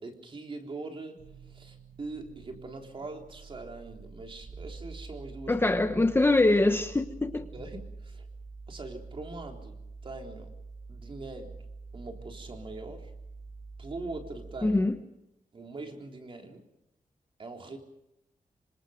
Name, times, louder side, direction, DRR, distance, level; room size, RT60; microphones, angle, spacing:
voice 1, 0.0-5.6 7.3-8.3 8.7-10.5 10.9-11.5 11.9-13.1 13.8-14.8 15.5-16.6 17.4-17.8, right 3 dB, 40° right, 3.7 m, -42 dB
sound 1, 1.2-14.8, right 4 dB, 70° right, 5.9 m, -46 dB
voice 2, 5.5-7.5 14.6-14.9, left 2 dB, 15° left, 1.1 m, -23 dB
27.5 x 25.5 x 5.2 m
wide cardioid pair, 180°, 14 cm